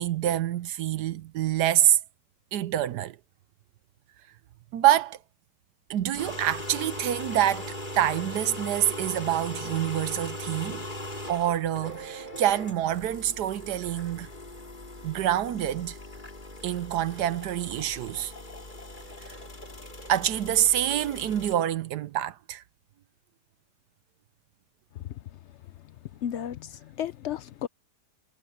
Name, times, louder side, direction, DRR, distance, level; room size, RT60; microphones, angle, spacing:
voice 1, 0.0-2.0 2.5-3.2 4.7-5.2 5.9-10.9 11.3-14.3 15.0-16.0 16.6-18.3 19.2-19.3 20.1-22.6, right 12 dB, 75° right, 1.3 m, -26 dB
sound 1, 6.0-21.5, left 1 dB, 25° left, 3.5 m, -40 dB
voice 2, 26.2-27.7, left 10 dB, 85° left, 0.6 m, -33 dB
omnidirectional pair, 1.8 m